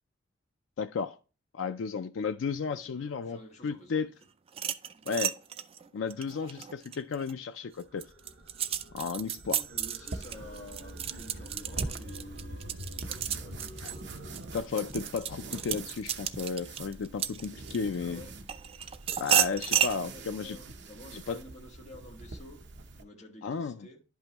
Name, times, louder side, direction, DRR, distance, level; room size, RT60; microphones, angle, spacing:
voice 1, 0.8-1.2 1.5-4.1 5.1-5.3 5.9-8.0 8.9-9.6 13.8-13.9 14.5-18.2 19.2-20.6 21.1-21.4 23.4-23.9, left 5 dB, 80° left, 0.4 m, -33 dB
voice 2, 2.6-4.1 9.4-12.7 13.0-14.0 18.0-18.4 20.1-22.6 23.0-24.0, left 1 dB, 40° left, 1.6 m, -50 dB
sound 1, 4.5-7.3 7.8-17.9 18.5-20.0, right 9 dB, 30° right, 0.4 m, -32 dB
sound 2, 7.6-14.6, equal, 85° right, 1.3 m, -46 dB
sound 3, 10.1-23.0, right 2 dB, 65° right, 0.8 m, -45 dB
10.5 x 5.5 x 3.0 m
head